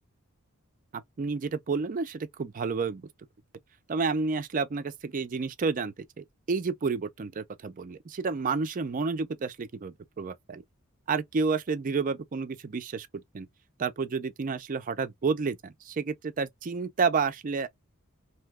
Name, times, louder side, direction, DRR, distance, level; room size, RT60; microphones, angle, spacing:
voice 1, 0.9-3.1 3.9-10.6 11.1-13.5 13.8-17.7, right 4 dB, 40° right, 0.4 m, -30 dB
2.7 x 2.2 x 3.3 m
head